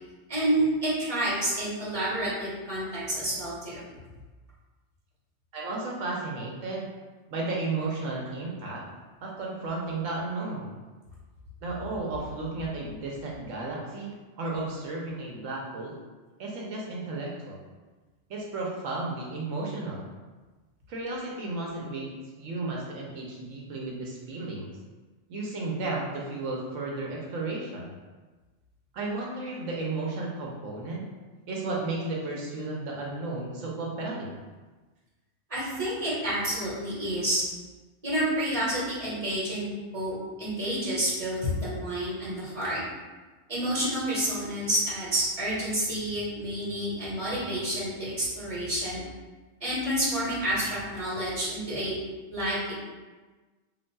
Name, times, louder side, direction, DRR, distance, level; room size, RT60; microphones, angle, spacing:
voice 1, 0.3-3.8 35.5-37.4 38.0-42.8 43.5-49.0 49.6-52.0 52.3-52.7, right 1 dB, 30° right, -9 dB, 1.5 m, -29 dB
voice 2, 5.5-6.9 7.3-8.8 9.2-10.7 11.6-15.9 16.4-17.6 18.3-20.1 20.9-22.1 22.4-24.7 25.3-27.9 28.9-31.1 31.5-34.4, right 2 dB, 85° right, -2 dB, 1.0 m, -33 dB
5.2 x 2.6 x 2.2 m, 1.3 s
omnidirectional pair, 1.3 m